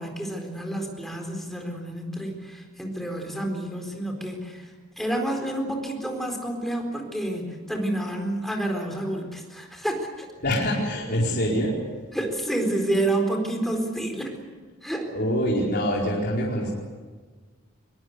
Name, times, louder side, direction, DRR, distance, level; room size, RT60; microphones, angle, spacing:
voice 1, 0.0-10.3 12.1-14.4 14.8-15.1, right 1 dB, ahead, 2 dB, 4.2 m, -29 dB
voice 2, 10.4-11.8 15.1-16.7, equal, 50° left, -4 dB, 4.7 m, -25 dB
22.5 x 22.5 x 8.1 m, 1.4 s
head